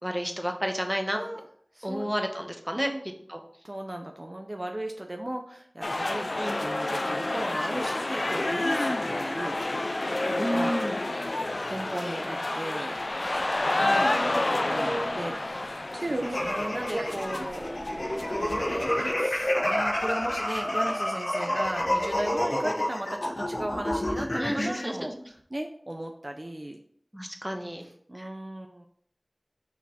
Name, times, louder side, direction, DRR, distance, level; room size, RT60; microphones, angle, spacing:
voice 1, 0.0-1.2 1.8-2.9 3.3-3.4 6.4-6.6 10.4-11.0 13.8-14.1 24.4-25.2 27.1-27.8 28.2-28.3, equal, 10° right, 3 dB, 1.0 m, -31 dB
voice 2, 1.7-2.1 2.7-3.0 3.6-6.3 6.6-10.8 11.6-13.0 13.6-25.1 25.5-26.8 28.1-28.9, right 1 dB, 45° right, 3 dB, 0.5 m, -37 dB
sound 1, 5.8-19.1, left 2 dB, 75° left, 0.3 m, -29 dB
sound 2, 13.1-13.4 13.9-15.6 15.9-16.5 16.8-19.1 19.4-20.0, right 1 dB, 90° right, 0.5 m, -36 dB
sound 3, 16.2-24.8, left 1 dB, 90° left, 1.1 m, -29 dB
5.8 x 4.2 x 4.2 m, 0.62 s
wide cardioid pair, 40°, 0 cm